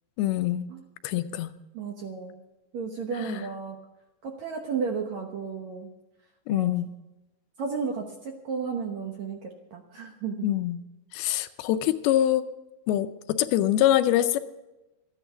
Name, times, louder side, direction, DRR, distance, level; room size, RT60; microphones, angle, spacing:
voice 1, 0.2-0.7 1.0-1.5 3.3-3.4 6.5-6.9 10.4-10.8 11.1-12.4 12.9-14.4, left 12 dB, 80° left, 10 dB, 2.4 m, -24 dB
voice 2, 1.7-2.4 2.7-3.8 4.2-5.9 6.5-6.7 7.6-10.5, right 5 dB, 70° right, 2 dB, 1.8 m, -33 dB
13.5 x 10.0 x 7.0 m, 1.0 s
omnidirectional pair, 4.5 m